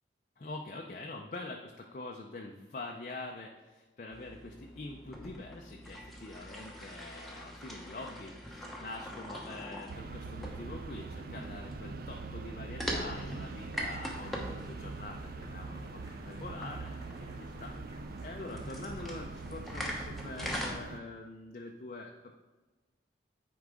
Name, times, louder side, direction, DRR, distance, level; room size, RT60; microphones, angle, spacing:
voice 1, 0.4-17.8 18.2-22.4, left 2 dB, 45° left, 1 dB, 0.5 m, -45 dB
sound 1, 4.1-20.7, equal, ahead, 0.9 m, -43 dB
sound 2, 9.9-21.0, right 3 dB, 50° right, 0.4 m, -43 dB
sound 3, 13.1-19.9, right 1 dB, 20° right, 1.3 m, -60 dB
9.6 x 4.8 x 3.7 m, 1.2 s
head